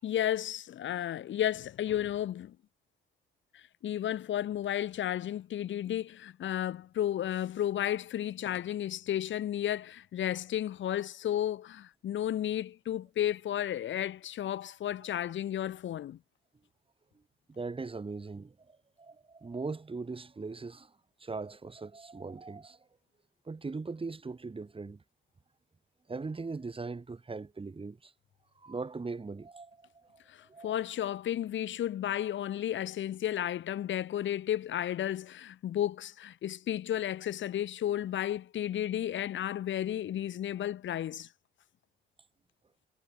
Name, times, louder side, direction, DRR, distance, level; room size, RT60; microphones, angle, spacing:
voice 1, 0.0-2.5 3.5-16.2 30.3-41.3, left 11 dB, 70° left, 5.1 m, -33 dB
voice 2, 17.5-20.9 21.2-22.8 23.5-25.0 26.1-28.1 28.6-30.2 30.5-30.8, right 4 dB, 25° right, 7.3 m, -40 dB
cardioid pair, 90°, 20 cm